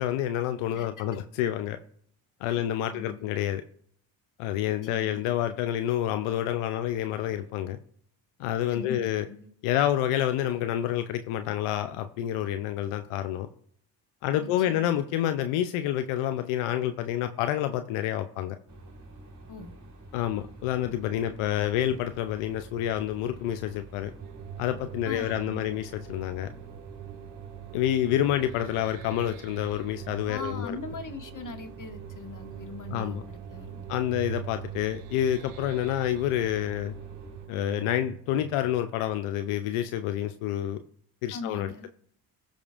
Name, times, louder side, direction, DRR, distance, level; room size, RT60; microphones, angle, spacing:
voice 1, 0.0-1.8 2.4-3.6 4.4-7.8 8.4-9.3 9.6-13.5 14.2-18.6 20.1-24.1 24.6-26.5 27.7-30.8 32.9-33.2 33.9-36.9 37.5-40.8 41.2-41.9, left 12 dB, 85° left, 9 dB, 0.6 m, -28 dB
voice 2, 0.7-1.1 2.5-3.3 4.7-5.3 8.7-9.5 14.4-15.0 19.5-19.7 25.0-25.8 30.3-33.8 41.3-41.9, left 3 dB, 40° left, 5 dB, 1.6 m, -41 dB
sound 1, 18.7-37.5, right 1 dB, 35° right, 1.9 m, -47 dB
sound 2, 24.2-39.7, right 13 dB, 90° right, 0.6 m, -43 dB
15.0 x 5.2 x 2.5 m, 0.63 s
supercardioid pair, 50°, 49 cm